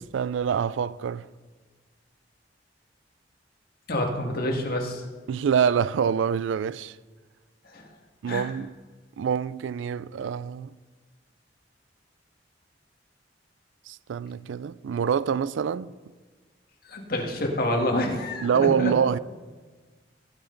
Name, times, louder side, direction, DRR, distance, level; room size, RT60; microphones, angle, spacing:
voice 1, 0.1-1.3 5.3-7.0 8.2-8.7 9.2-10.7 13.9-15.9 18.4-19.2, right 7 dB, 85° right, 0.3 m, -25 dB
voice 2, 3.9-5.1 7.6-7.9 8.3-8.5 16.9-18.9, left 1 dB, 55° left, 1.8 m, -28 dB
18.0 x 7.8 x 3.9 m
head